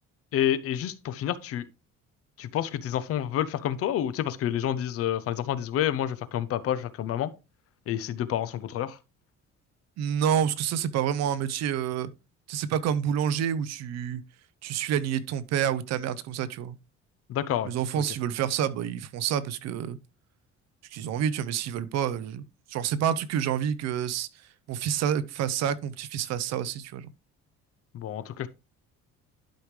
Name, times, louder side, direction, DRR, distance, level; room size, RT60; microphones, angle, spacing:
voice 1, 0.3-1.6 2.4-7.3 7.9-9.0 17.3-18.0 27.9-28.5, left 11 dB, 50° left, 0.7 m, -29 dB
voice 2, 10.0-12.1 12.5-14.2 14.6-16.8 17.6-20.0 20.9-24.3 24.7-27.1, right 9 dB, 60° right, 0.7 m, -28 dB
11.5 x 5.1 x 3.2 m
cardioid pair, 180°, 29 cm